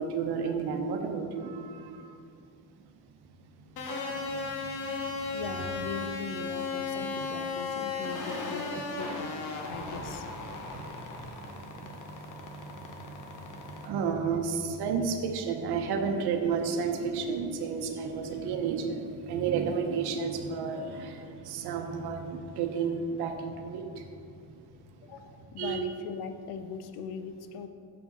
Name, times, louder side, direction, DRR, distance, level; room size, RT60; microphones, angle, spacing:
voice 1, 0.0-2.0 5.1-5.3 9.7-9.8 10.7-11.1 11.8-12.2 13.1-13.2 13.8-23.8 25.6-25.8, right 5 dB, 80° right, 5 dB, 0.8 m, -31 dB
sound 1, 3.8-13.9, left 3 dB, 50° left, 0.9 m, -36 dB
voice 2, 5.3-9.3 9.7-10.2 25.0-27.7, left 6 dB, 90° left, 9 dB, 0.6 m, -40 dB
7.3 x 4.6 x 4.1 m, 2.4 s
cardioid pair, 140°, 38 cm